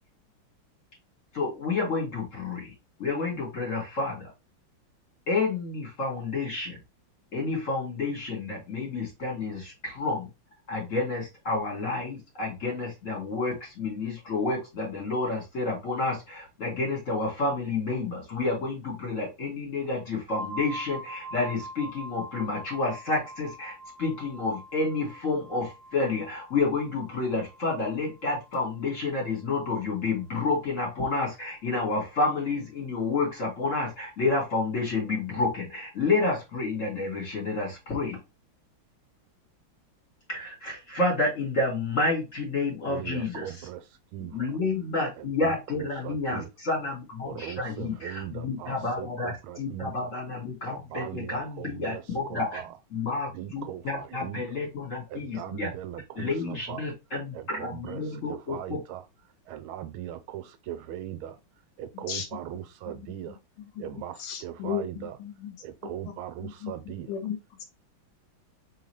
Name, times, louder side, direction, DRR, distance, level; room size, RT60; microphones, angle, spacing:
voice 1, 1.3-2.7 3.0-4.3 5.3-6.8 7.3-10.3 10.7-38.2 40.3-43.7 44.3-52.6 52.9-55.7 56.1-58.8, left 3 dB, 35° left, 2.7 m, -30 dB
sound 1, 20.3-29.9, right 1 dB, 10° right, 0.3 m, -44 dB
voice 2, 42.9-44.4 45.2-46.5 47.2-50.1 50.7-52.7 53.3-54.4 55.1-56.9 57.3-58.0 58.3-59.0 59.5-61.4 61.8-63.4 63.8-65.2 65.6-67.1, right 11 dB, 80° right, 1.5 m, -39 dB
voice 3, 61.9-62.3 62.9-65.6 65.8-66.7 67.1-67.6, left 8 dB, 85° left, 1.7 m, -37 dB
4.0 x 3.8 x 3.1 m
omnidirectional pair, 2.3 m